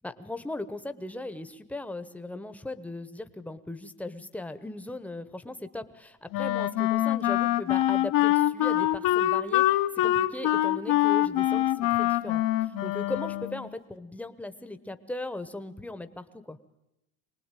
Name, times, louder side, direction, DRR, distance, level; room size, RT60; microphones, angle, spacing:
voice 1, 0.0-16.6, left 2 dB, 5° left, 10 dB, 1.0 m, -38 dB
Wind instrument woodwind instrument, 6.3-13.7, left 14 dB, 60° left, 1.1 m, -25 dB
24.5 x 19.0 x 9.1 m, 0.87 s
cardioid pair, 130°, 38 cm